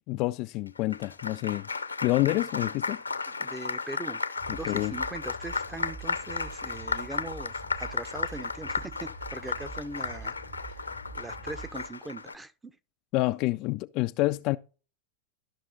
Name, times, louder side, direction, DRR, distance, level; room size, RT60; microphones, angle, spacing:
voice 1, 0.1-1.7 2.0-3.0 4.5-4.9 13.1-14.6, left 20 dB, 40° left, 0.4 m, -28 dB
Applause, 0.7-12.3, left 4 dB, 80° left, 0.7 m, -34 dB
voice 2, 3.3-4.2 4.5-12.7, right 2 dB, 10° right, 0.7 m, -41 dB
sound 1, 4.3-11.9, right 3 dB, 75° right, 5.9 m, -46 dB
12.5 x 6.1 x 4.0 m
figure-of-eight pair, 90°, 0 cm